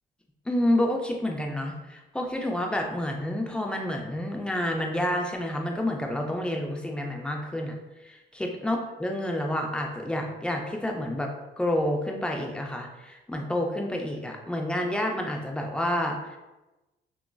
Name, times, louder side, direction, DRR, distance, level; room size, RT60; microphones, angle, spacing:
voice 1, 0.5-7.7 8.0-11.3 11.6-16.4, left 1 dB, 5° left, 2 dB, 0.4 m, -29 dB
2.9 x 2.5 x 2.2 m, 1.0 s
cardioid pair, 90°, 20 cm